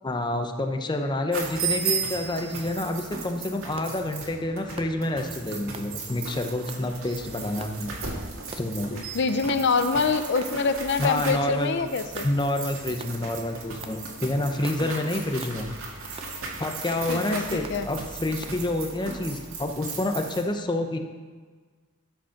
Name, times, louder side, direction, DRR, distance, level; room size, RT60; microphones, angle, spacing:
voice 1, 0.0-8.0 8.6-8.9 11.0-11.9 12.2-15.7 16.6-21.0, left 1 dB, 20° left, 5 dB, 0.7 m, -28 dB
sound 1, 1.3-20.4, right 4 dB, 80° right, 1.9 m, -36 dB
sound 2, 3.8-4.0 4.8-5.0 5.7-5.9 6.7-6.9 7.6-7.8 8.5-8.8 9.5-9.7 10.4-10.6 11.3-11.5 12.1-12.3 13.0-13.2 13.8-14.0 14.6-14.8 15.4-15.6 16.2-16.4 16.9-17.1 17.6-17.8 18.4-18.6, right 4 dB, 30° right, 0.5 m, -43 dB
voice 2, 8.9-12.3 17.1-17.9, left 4 dB, 60° left, 10 dB, 0.6 m, -25 dB
12.5 x 5.2 x 5.7 m, 1.5 s
head